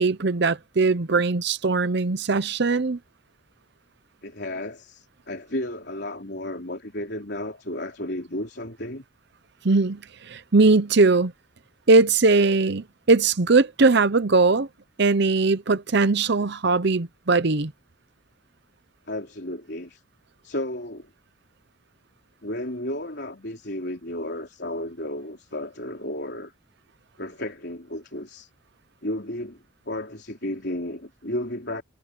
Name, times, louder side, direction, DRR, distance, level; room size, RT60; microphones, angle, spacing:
voice 1, 0.0-3.0 9.6-11.3 11.9-14.7 15.0-17.7, right 3 dB, 55° right, 0.8 m, -20 dB
voice 2, 4.2-9.0 19.1-20.0 20.4-21.1 22.4-26.5 27.2-28.5 29.0-31.8, left 1 dB, 55° left, 4.2 m, -33 dB
head